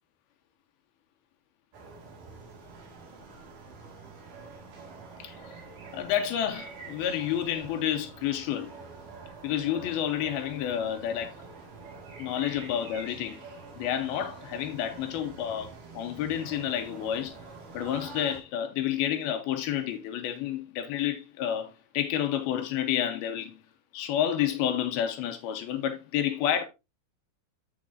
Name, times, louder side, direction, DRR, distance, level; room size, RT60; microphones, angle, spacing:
sound 1, 1.7-18.4, right 4 dB, 60° right, 3.2 m, -46 dB
voice 1, 5.2-5.5 5.9-8.7 9.4-11.3 12.2-13.4 13.8-17.4 17.7-23.6 23.9-26.6, left 10 dB, 80° left, 2.6 m, -30 dB
12.5 x 4.7 x 2.5 m
omnidirectional pair, 4.6 m